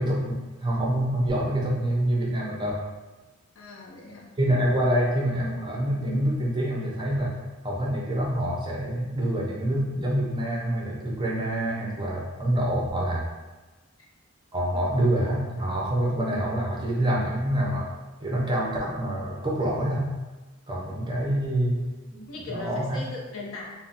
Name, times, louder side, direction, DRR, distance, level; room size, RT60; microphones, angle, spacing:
voice 1, 0.0-2.8 4.4-7.3 7.6-13.2 14.5-17.9 18.2-20.1 20.7-21.8 22.1-23.0, right 1 dB, 20° right, -3 dB, 0.5 m, -26 dB
voice 2, 3.6-4.3 14.0-14.1 14.7-14.9 22.3-23.7, left 2 dB, 70° left, -2 dB, 0.5 m, -39 dB
2.3 x 2.0 x 3.8 m, 1.2 s
head